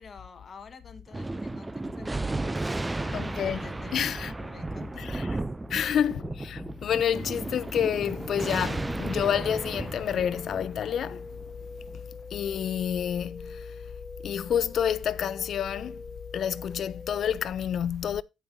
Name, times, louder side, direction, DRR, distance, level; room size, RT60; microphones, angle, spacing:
voice 1, 0.0-5.2 5.7-6.0, left 4 dB, 45° left, 1.4 m, -48 dB
Thunder, 1.1-12.0, right 2 dB, 15° right, 0.5 m, -34 dB
voice 2, 3.1-3.6 3.9-4.3 5.0-5.3 5.7-11.3 12.3-13.7 14.2-16.0 16.3-18.2, left 9 dB, 65° left, 0.5 m, -29 dB
sound 1, 7.8-17.3, left 3 dB, 20° left, 0.7 m, -44 dB
16.0 x 5.4 x 2.7 m
cardioid pair, 90°, 0 cm